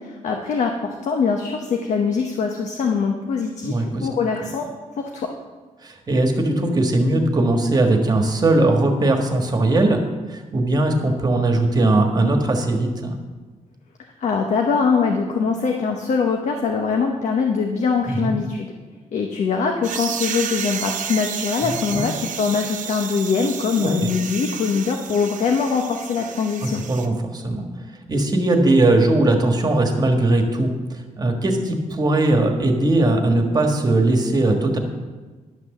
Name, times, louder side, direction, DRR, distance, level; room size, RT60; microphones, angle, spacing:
voice 1, 0.0-3.7 4.0-4.7 5.0-5.3 14.2-18.7 19.1-26.8, left 5 dB, 65° left, 3 dB, 1.0 m, -22 dB
voice 2, 3.6-4.1 5.8-10.0 10.3-13.2 18.0-18.3 21.6-22.1 24.0-24.1 26.6-27.6 28.1-34.8, right 2 dB, 30° right, 4 dB, 1.5 m, -19 dB
sound 1, 19.8-27.1, right 8 dB, 85° right, 0.8 m, -31 dB
11.0 x 6.1 x 7.1 m, 1.3 s
cardioid pair, 130°, 13 cm